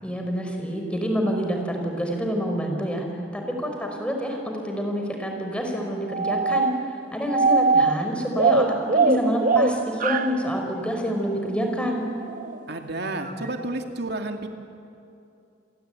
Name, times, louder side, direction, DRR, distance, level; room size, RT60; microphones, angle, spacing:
voice 1, 0.0-3.0 3.3-6.7 7.1-12.1, equal, 5° left, 2 dB, 4.7 m, -27 dB
sound 1, 6.1-7.0 7.3-10.4 12.2-12.6 13.3-13.5, right 4 dB, 50° right, 1.0 m, -22 dB
voice 2, 12.7-14.5, right 2 dB, 65° right, 5 dB, 2.5 m, -31 dB
29.0 x 22.0 x 9.2 m, 2.6 s
head